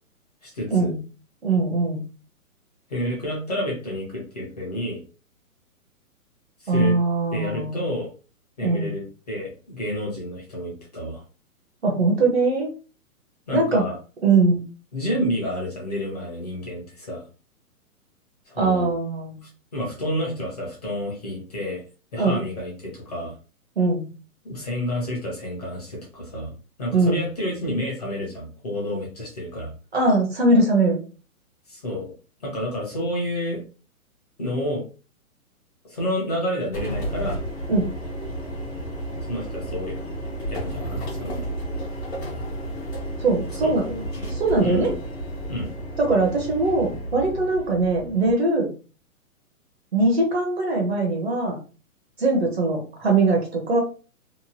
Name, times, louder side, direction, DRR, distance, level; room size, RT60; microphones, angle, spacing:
voice 1, 0.4-0.9 2.9-5.0 6.6-6.9 7.3-8.1 8.6-11.2 13.5-14.0 14.9-17.2 18.5-18.9 19.4-21.8 22.1-23.3 24.4-26.5 26.8-29.7 31.7-32.1 32.4-33.6 34.4-34.8 35.8-37.4 39.3-39.9 40.5-41.5 43.5-43.7 44.1-44.9 45.5-45.7, equal, 25° left, -3 dB, 0.8 m, -29 dB
voice 2, 1.4-2.0 6.7-7.8 8.6-8.9 11.8-12.7 13.5-13.9 14.2-14.6 18.6-19.4 22.2-22.4 23.8-24.1 26.9-27.3 29.9-31.0 37.7-37.9 43.2-44.0 44.3-44.9 46.0-48.7 49.9-51.6 52.2-53.8, right 3 dB, 45° right, 1 dB, 0.7 m, -21 dB
sound 1, 36.7-48.3, right 1 dB, 45° left, 1.1 m, -32 dB
2.9 x 2.1 x 2.7 m, 0.35 s
hypercardioid pair, 180°, 44 cm